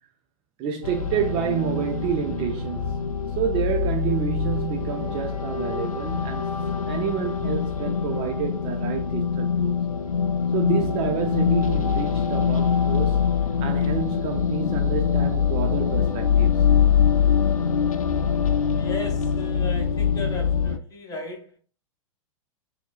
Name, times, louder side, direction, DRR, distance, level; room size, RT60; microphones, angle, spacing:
voice 1, 0.6-3.0 3.4-9.8 10.5-13.2 13.6-16.7, right 8 dB, 30° right, 0.4 m, -29 dB
sound 1, 0.8-20.8, left 7 dB, 90° left, 0.4 m, -24 dB
voice 2, 18.6-21.6, left 3 dB, 20° left, 1.2 m, -35 dB
4.2 x 2.7 x 2.3 m
hypercardioid pair, 105°, 18 cm